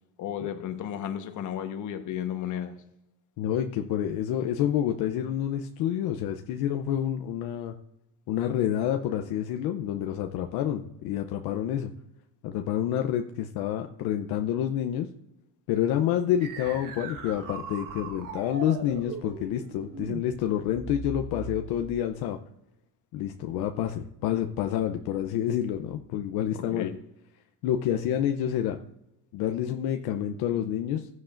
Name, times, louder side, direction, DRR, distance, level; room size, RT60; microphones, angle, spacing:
voice 1, 0.2-2.7 26.5-27.0, left 10 dB, 50° left, 1.3 m, -33 dB
voice 2, 3.4-7.8 8.3-11.9 12.4-15.1 15.7-22.4 23.1-26.9 27.6-28.8 29.3-31.1, left 10 dB, 70° left, 0.8 m, -28 dB
sound 1, 16.4-22.1, right 4 dB, 55° right, 1.5 m, -40 dB
15.5 x 9.5 x 2.6 m
cardioid pair, 135°, 39 cm